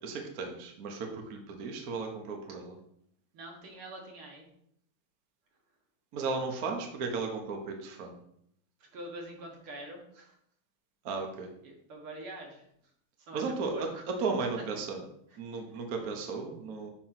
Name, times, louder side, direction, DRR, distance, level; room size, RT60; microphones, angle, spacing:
voice 1, 0.0-2.8 6.1-8.2 11.0-11.5 13.3-15.0 15.4-16.9, right 4 dB, 50° right, 2 dB, 1.2 m, -35 dB
voice 2, 3.3-4.5 8.9-10.3 11.6-12.6 13.3-14.0, right 1 dB, 75° right, 0 dB, 2.4 m, -44 dB
8.7 x 3.0 x 5.7 m, 0.72 s
omnidirectional pair, 2.3 m